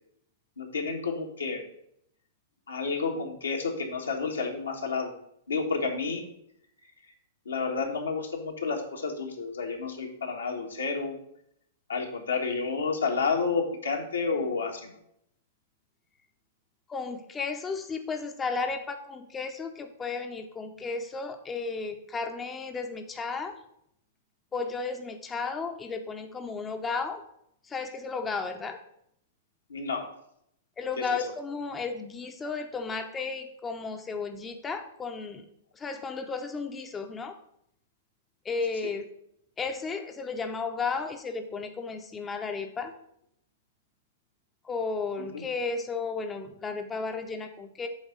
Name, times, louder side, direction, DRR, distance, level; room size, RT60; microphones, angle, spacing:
voice 1, 0.6-1.6 2.7-5.1 5.5-6.2 7.4-11.2 11.9-14.9 29.7-30.1 38.8-38.9 45.3-45.4, left 4 dB, 85° left, 1 dB, 1.5 m, -30 dB
voice 2, 16.9-23.6 24.5-27.2 27.6-28.8 30.8-35.4 35.7-37.4 38.4-39.1 39.6-42.9 44.6-47.9, left 4 dB, 15° left, 6 dB, 0.7 m, -34 dB
8.1 x 3.5 x 6.5 m, 0.73 s
hypercardioid pair, 110°, 0 cm